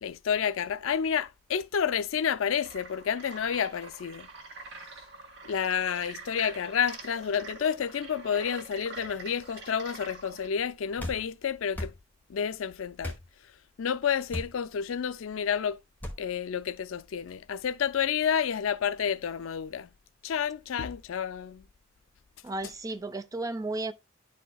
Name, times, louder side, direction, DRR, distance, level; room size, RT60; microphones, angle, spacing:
voice 1, 0.0-4.3 5.4-11.9 12.3-13.2 13.8-15.8 16.2-19.9 20.2-21.6, left 7 dB, 75° left, 0.4 m, -30 dB
sound 1, 2.5-10.5, right 3 dB, 60° right, 1.6 m, -45 dB
sound 2, 11.0-11.2 11.7-12.0 13.0-13.2 14.3-14.6 16.0-16.2, left 1 dB, 10° left, 1.1 m, -35 dB
voice 2, 22.4-23.9, right 2 dB, 15° right, 0.4 m, -33 dB
11.0 x 4.3 x 2.2 m
head